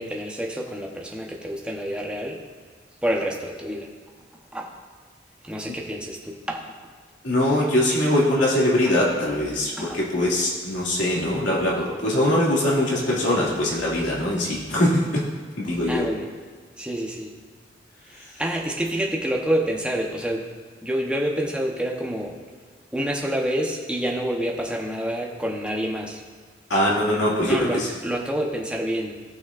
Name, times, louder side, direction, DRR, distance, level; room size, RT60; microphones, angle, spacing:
voice 1, 0.0-2.4 3.0-3.9 4.5-4.7 5.4-6.7 9.8-10.0 15.9-16.3 16.8-17.3 18.1-20.5 20.8-22.4 22.9-26.2 27.4-29.2, equal, 5° right, -1 dB, 0.9 m, -28 dB
voice 2, 7.2-15.2 15.6-16.1 26.7-27.9, left 1 dB, 85° left, -5 dB, 2.4 m, -22 dB
17.5 x 6.1 x 2.5 m, 1.5 s
head